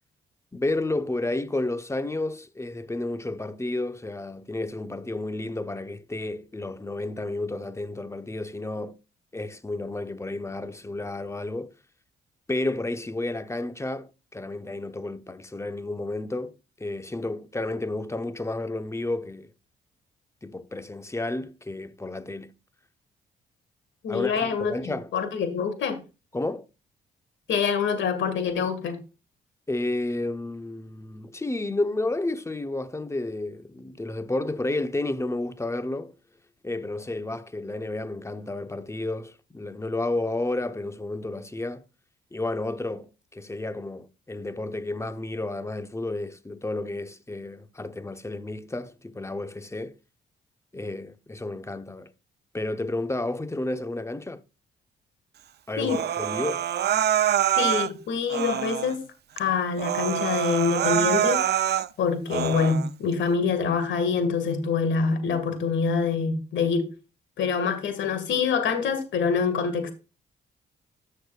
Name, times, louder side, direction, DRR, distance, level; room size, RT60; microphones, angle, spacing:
voice 1, 0.5-9.0 9.3-11.7 12.5-19.5 20.4-22.5 24.1-25.1 26.3-26.7 29.7-36.1 36.6-41.8 42.3-49.9 50.7-52.1 52.5-54.4 55.7-56.7, left 2 dB, 15° left, 0.8 m, -31 dB
voice 2, 24.0-26.0 27.5-29.0 55.8-56.0 57.5-59.0 59.4-61.4 62.0-66.9 67.4-69.9, left 5 dB, 70° left, 1.9 m, -25 dB
Human voice, 55.8-57.9 58.3-59.0 59.4-59.5 59.8-61.9 62.3-62.9, right 10 dB, 55° right, 0.5 m, -25 dB
13.5 x 6.7 x 2.4 m
supercardioid pair, 55°, 20 cm